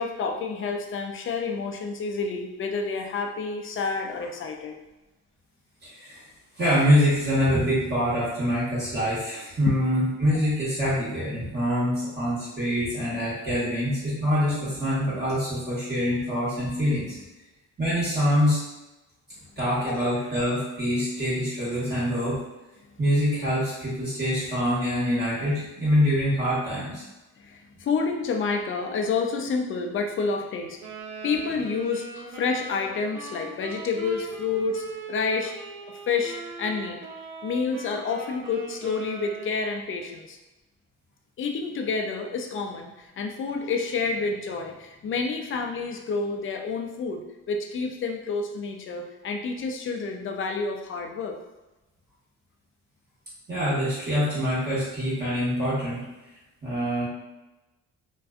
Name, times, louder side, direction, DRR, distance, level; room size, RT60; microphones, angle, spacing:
voice 1, 0.0-4.8 19.9-20.0 27.4-30.8 31.2-32.0 32.3-35.5 36.1-37.0 37.4-40.4 41.4-47.2 47.5-51.4, left 4 dB, 45° left, 4 dB, 0.4 m, -29 dB
voice 2, 5.8-6.2 6.6-17.2 17.8-18.7 19.6-22.4 23.0-27.0 53.5-56.0 56.6-57.1, equal, 35° right, -10 dB, 1.2 m, -25 dB
Wind instrument woodwind instrument, 30.8-39.9, right 3 dB, 80° right, 0.6 m, -40 dB
2.5 x 2.2 x 2.4 m, 1.0 s
cardioid pair, 90°, 30 cm